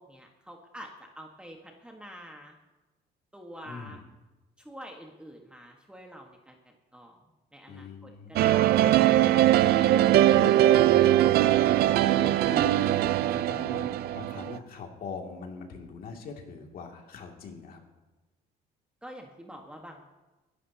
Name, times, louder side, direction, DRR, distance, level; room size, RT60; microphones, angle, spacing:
voice 1, 0.0-2.6 3.3-4.0 4.6-7.2 7.5-9.7 19.0-20.0, equal, 5° right, 1 dB, 1.4 m, -47 dB
voice 2, 3.6-4.0 7.7-8.7 9.1-9.6 10.2-17.8, left 5 dB, 60° left, 2 dB, 2.5 m, -42 dB
sound 1, 8.4-14.6, right 13 dB, 70° right, 0.5 m, -21 dB
22.0 x 11.5 x 2.9 m, 1.1 s
cardioid pair, 110°, 17 cm